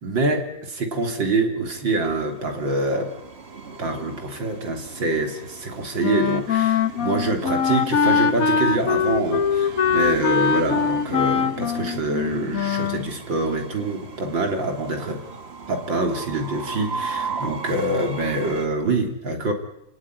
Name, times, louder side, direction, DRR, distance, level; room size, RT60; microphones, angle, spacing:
voice 1, 0.0-3.1 3.8-15.2 15.7-19.5, right 2 dB, 75° right, 4 dB, 4.0 m, -25 dB
Train, 1.9-18.7, right 4 dB, 35° right, 1.6 m, -37 dB
Wind instrument woodwind instrument, 6.0-13.1, left 6 dB, 50° left, 1.5 m, -22 dB
28.5 x 17.5 x 9.8 m, 0.83 s
omnidirectional pair, 2.1 m